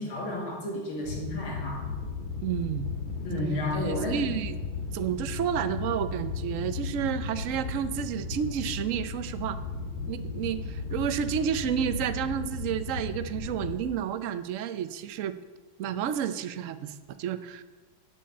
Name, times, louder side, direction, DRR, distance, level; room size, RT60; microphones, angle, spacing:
voice 1, 0.0-1.9 3.2-4.2, left 1 dB, 85° left, -1 dB, 3.3 m, -32 dB
sound 1, 1.0-13.8, left 4 dB, 50° left, 2.5 m, -35 dB
voice 2, 2.4-2.9 3.8-4.5 4.9-9.6 10.1-15.3 15.8-17.6, right 9 dB, 75° right, 12 dB, 0.7 m, -31 dB
8.9 x 8.6 x 8.6 m, 1.3 s
omnidirectional pair, 2.2 m